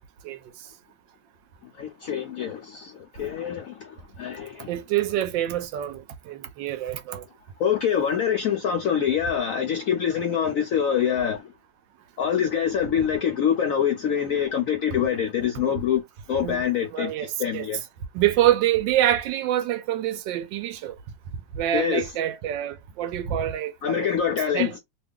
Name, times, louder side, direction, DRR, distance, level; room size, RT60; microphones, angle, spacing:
voice 1, 1.8-4.7 7.6-11.5 12.2-16.0 16.3-17.8 21.7-22.1 23.8-24.8, left 8 dB, 75° left, 0.7 m, -25 dB
voice 2, 4.7-7.2 16.4-16.6 16.9-17.7 18.1-20.9 21.5-24.1 24.5-24.7, right 12 dB, 75° right, 1.2 m, -26 dB
3.1 x 2.3 x 3.5 m
omnidirectional pair, 2.1 m